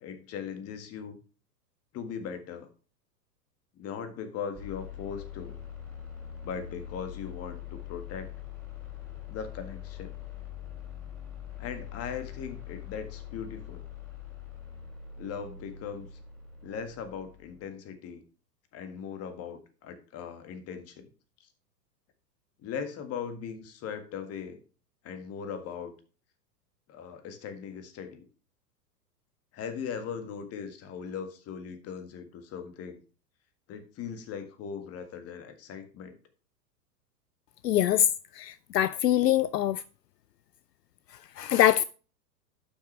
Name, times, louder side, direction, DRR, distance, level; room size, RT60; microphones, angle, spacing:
voice 1, 0.0-1.2 1.9-2.7 3.8-5.6 6.4-8.3 9.3-10.1 11.6-13.8 15.2-16.1 16.6-18.2 18.7-21.1 22.6-24.6 25.0-25.9 26.9-28.3 29.5-33.0 33.7-36.1, left 7 dB, 30° left, 1.7 m, -39 dB
sound 1, 4.6-17.6, left 10 dB, 5° left, 3.6 m, -43 dB
voice 2, 37.6-38.1 38.4-39.8 41.4-41.8, left 12 dB, 75° left, 0.6 m, -23 dB
12.0 x 6.1 x 3.3 m
figure-of-eight pair, 100°, 50 cm